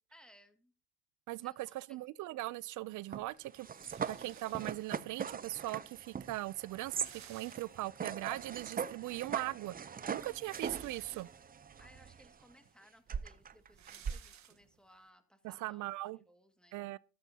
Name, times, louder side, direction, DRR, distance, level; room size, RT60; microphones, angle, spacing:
voice 1, 0.1-0.7 1.4-2.0 11.8-15.9 16.3-16.8, equal, 5° left, 2.0 m, -63 dB
voice 2, 1.3-3.7 4.1-9.8 10.1-11.3 15.4-16.2 16.7-17.0, right 17 dB, 80° right, 0.4 m, -40 dB
sound 1, 3.1-12.4 13.1-14.2, right 7 dB, 30° right, 0.6 m, -41 dB
sound 2, 3.6-5.1 5.9-6.0 6.2-6.3 6.6-8.2 8.6-8.7 10.1-11.6 12.2-12.3 12.6-15.0, right 10 dB, 65° right, 1.4 m, -57 dB
13.5 x 13.0 x 2.8 m
cardioid pair, 90°, 30 cm